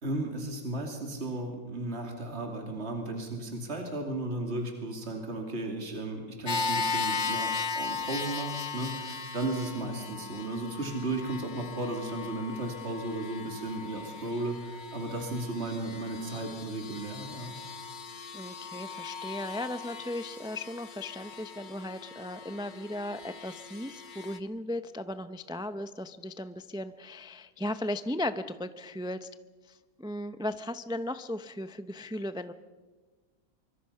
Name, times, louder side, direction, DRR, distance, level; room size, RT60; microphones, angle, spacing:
voice 1, 0.0-17.5, right 2 dB, 45° right, 2 dB, 3.1 m, -35 dB
sound 1, 6.5-24.4, left 4 dB, 35° left, 1.1 m, -38 dB
voice 2, 18.3-29.3 29.7-32.5, left 1 dB, 5° right, 11 dB, 0.3 m, -36 dB
25.0 x 24.5 x 5.7 m, 1.3 s
omnidirectional pair, 1.6 m